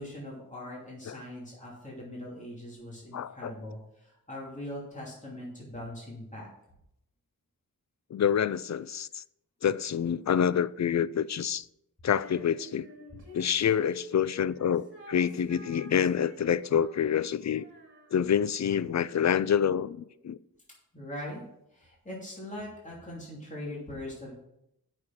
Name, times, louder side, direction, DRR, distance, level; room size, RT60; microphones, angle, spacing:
voice 1, 0.0-6.5 20.9-21.4 21.7-24.3, left 1 dB, 20° left, 2.8 m, -41 dB
voice 2, 3.1-3.5 8.1-9.2 9.6-11.7 12.0-12.9 13.3-17.6 18.1-20.4, left 8 dB, 50° left, 0.4 m, -27 dB
Female singing, 12.1-18.6, left 1 dB, 30° right, 2.9 m, -49 dB
8.5 x 6.5 x 6.0 m
wide cardioid pair, 95°, 36 cm